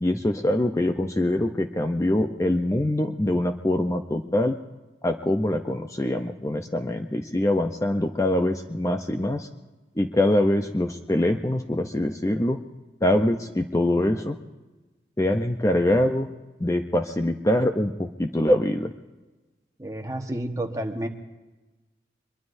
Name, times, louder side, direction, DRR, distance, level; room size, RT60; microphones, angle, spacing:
voice 1, 0.0-4.6 5.0-9.5 10.0-12.6 13.0-14.4 15.2-16.3 16.6-18.9, left 1 dB, 20° left, 6 dB, 0.6 m, -24 dB
voice 2, 19.8-21.1, right 1 dB, 20° right, 4 dB, 1.2 m, -30 dB
24.5 x 22.5 x 2.6 m, 1.2 s
head